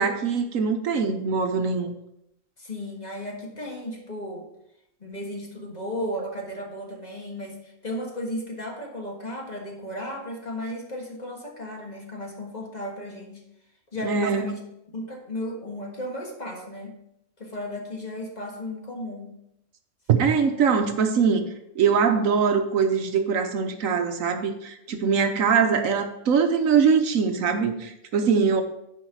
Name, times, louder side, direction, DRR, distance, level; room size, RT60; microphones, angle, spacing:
voice 1, 0.0-1.9 14.0-14.5 20.1-21.5 21.8-28.6, right 6 dB, 75° right, 6 dB, 1.2 m, -22 dB
voice 2, 2.6-4.5 5.0-13.4 13.9-14.6 14.9-17.0 17.4-19.4 25.3-25.4, left 1 dB, 30° left, 0 dB, 1.6 m, -34 dB
10.5 x 4.9 x 4.7 m, 0.81 s
omnidirectional pair, 1.5 m